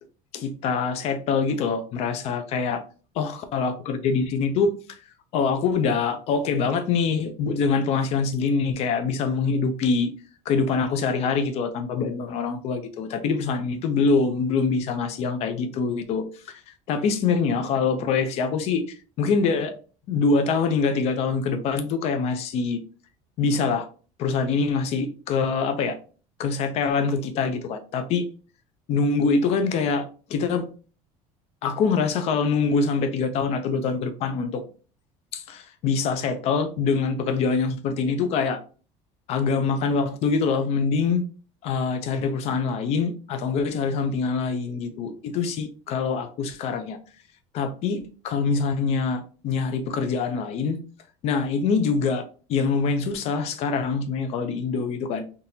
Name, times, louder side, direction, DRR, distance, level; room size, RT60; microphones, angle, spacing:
voice 1, 0.3-2.8 3.2-4.8 5.3-10.1 10.5-16.2 16.9-18.8 19.2-19.7 20.1-22.8 23.4-23.9 24.2-26.0 26.4-28.3 28.9-30.7 31.6-34.6 35.3-38.6 39.3-41.2 41.6-47.0 47.5-50.8 51.2-55.2, left 5 dB, 45° left, 0.5 m, -24 dB
3.7 x 2.8 x 2.8 m
cardioid pair, 160°, 15 cm